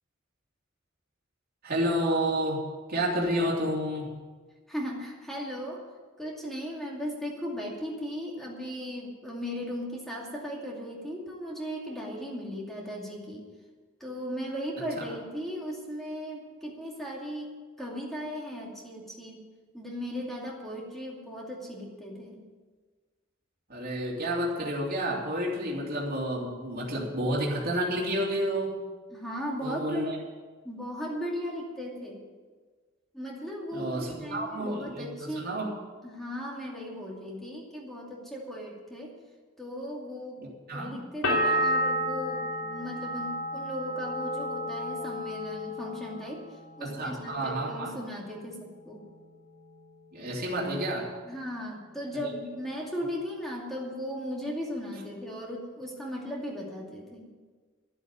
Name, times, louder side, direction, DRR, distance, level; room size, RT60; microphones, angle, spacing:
voice 1, 1.6-4.1 23.7-28.8 29.6-30.2 33.7-35.7 40.4-41.0 46.8-47.9 50.1-51.1 52.1-52.3, right 1 dB, 50° right, -4 dB, 2.9 m, -30 dB
voice 2, 4.7-5.8 6.2-13.5 14.0-19.4 19.7-22.4 29.1-30.1 30.6-32.2 33.1-35.5 36.0-39.1 39.6-40.4 40.7-46.4 46.8-49.0 51.2-57.3, equal, ahead, -2 dB, 2.5 m, -37 dB
sound 1, 41.2-46.9 47.2-47.9, equal, 75° left, 3.0 m, -31 dB
13.0 x 8.1 x 9.5 m, 1.4 s
head